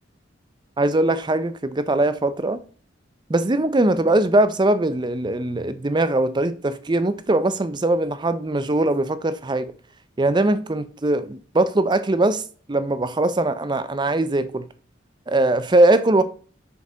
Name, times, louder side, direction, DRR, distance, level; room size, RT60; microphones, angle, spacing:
voice 1, 0.8-2.6 3.3-9.7 10.2-14.7 15.3-16.2, right 2 dB, 25° right, 0.5 m, -21 dB
7.1 x 6.4 x 3.8 m
head